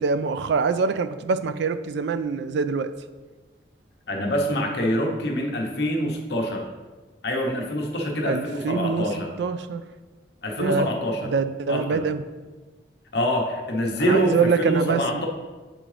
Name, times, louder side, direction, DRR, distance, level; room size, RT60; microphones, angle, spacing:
voice 1, 0.0-2.9 8.2-9.1 9.4-9.8 10.6-10.9 11.3-12.2 14.0-15.2, right 5 dB, 70° right, 12 dB, 0.3 m, -24 dB
voice 2, 4.1-6.6 7.2-9.3 10.4-11.3 11.7-12.0 13.1-15.3, equal, 65° left, 0 dB, 0.9 m, -25 dB
7.9 x 3.7 x 3.2 m, 1.3 s
head